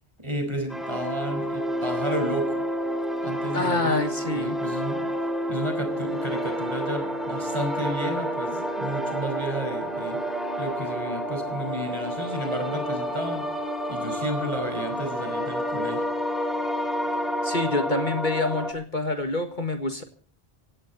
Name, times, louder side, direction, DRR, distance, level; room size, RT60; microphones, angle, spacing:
voice 1, 0.2-2.6 3.2-5.1 5.5-10.2 10.6-13.5 13.9-16.1, right 1 dB, 25° right, 6 dB, 5.0 m, -32 dB
sound 1, 0.7-18.7, equal, ahead, 3.3 m, -29 dB
voice 2, 3.5-4.6 17.4-20.0, left 2 dB, 50° left, 7 dB, 1.8 m, -27 dB
17.5 x 16.5 x 4.1 m, 0.41 s
omnidirectional pair, 1.1 m